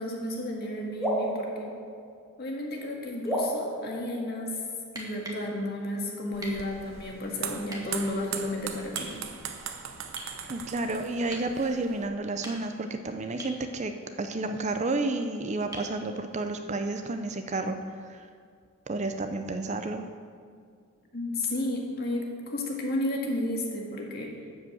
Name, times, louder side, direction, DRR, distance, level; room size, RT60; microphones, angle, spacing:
voice 1, 0.0-1.8 2.4-4.6 4.9-9.2 21.1-24.4, left 1 dB, 45° left, -1 dB, 1.9 m, -32 dB
sound 1, 1.0-2.7 3.2-4.9, equal, ahead, 1.9 m, -33 dB
sound 2, 4.8-5.5 6.4-6.6 7.7-7.8 9.0-9.2 10.2-10.4 11.3-11.5 12.2-12.9 13.4-13.6 15.7-16.0 17.8-17.9, right 1 dB, 15° right, 1.6 m, -41 dB
sound 3, 6.3-12.1, right 7 dB, 65° right, 0.8 m, -39 dB
voice 2, 10.5-13.9 14.2-17.8 18.1-18.3 18.9-20.0, right 2 dB, 35° right, 7 dB, 0.5 m, -31 dB
12.5 x 5.2 x 7.9 m, 2.1 s
head